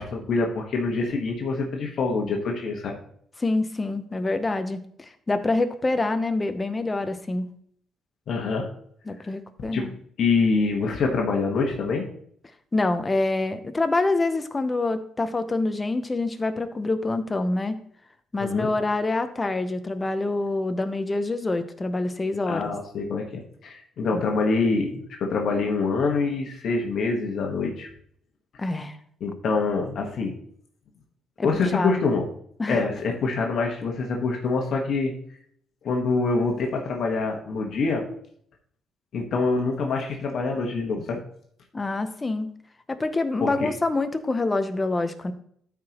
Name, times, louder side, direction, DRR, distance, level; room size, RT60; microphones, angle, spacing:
voice 1, 0.0-2.9 8.3-8.7 9.7-9.8 10.2-12.1 18.4-18.7 22.5-27.9 29.2-30.3 31.4-32.3 32.7-35.1 35.8-38.1 39.1-41.2 43.4-43.7, left 4 dB, 55° left, 1 dB, 1.3 m, -25 dB
voice 2, 3.4-7.5 9.1-9.9 12.7-17.8 18.3-22.7 24.1-24.2 28.6-29.0 31.4-32.0 32.6-32.8 41.7-42.5 42.9-45.3, left 2 dB, 20° left, 9 dB, 0.7 m, -26 dB
13.0 x 4.8 x 2.9 m, 0.64 s
cardioid pair, 130°, 0 cm